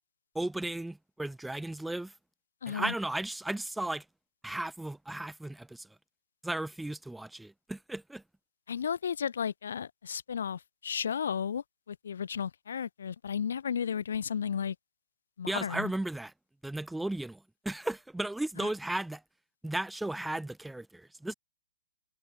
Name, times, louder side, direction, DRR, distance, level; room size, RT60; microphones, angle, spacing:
voice 1, 0.3-2.1 2.7-4.0 4.4-5.9 6.4-8.2 15.5-16.3 16.6-19.2 19.6-21.3, right 1 dB, 5° right, 4.3 m, -35 dB
voice 2, 2.6-2.9 8.7-14.8 15.4-15.9 18.6-18.7, left 7 dB, 75° left, 5.9 m, -34 dB
hypercardioid pair, 155°, 0 cm